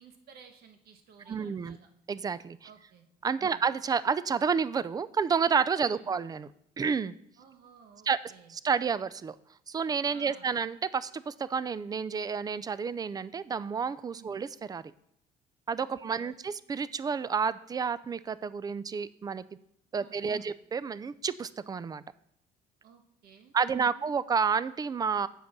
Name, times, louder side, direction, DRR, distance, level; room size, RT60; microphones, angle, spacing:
voice 1, 0.0-1.9 2.6-3.1 3.4-3.6 5.8-6.1 7.4-8.6 10.1-10.5 14.1-14.4 15.9-16.4 20.0-20.5 22.8-24.1, right 7 dB, 65° right, 6 dB, 1.4 m, -55 dB
voice 2, 1.3-1.8 2.1-2.7 3.2-6.5 6.8-7.1 8.1-8.2 8.5-9.4 9.7-14.8 15.7-19.4 19.9-22.0 23.5-25.3, right 6 dB, 20° right, 17 dB, 0.3 m, -30 dB
8.1 x 5.1 x 6.0 m, 0.75 s
cardioid pair, 110°, 17 cm